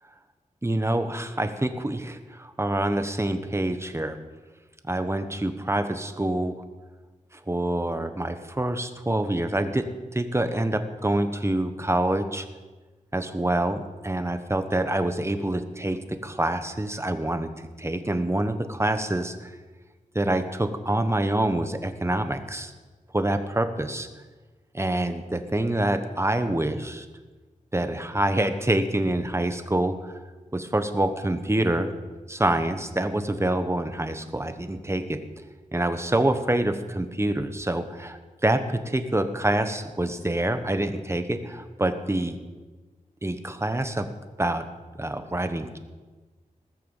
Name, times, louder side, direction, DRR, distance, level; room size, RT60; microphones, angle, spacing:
voice 1, 0.6-4.2 4.9-6.6 7.5-9.9 10.1-12.4 13.1-17.5 17.8-19.5 20.1-22.7 23.1-24.1 24.7-27.0 27.7-30.1 30.5-31.9 32.3-35.2 35.7-42.4 43.2-44.1 44.4-44.6 44.9-45.8, right 1 dB, 20° right, 8 dB, 1.1 m, -26 dB
19.5 x 6.8 x 7.2 m, 1.3 s
wide cardioid pair, 85°, 14 cm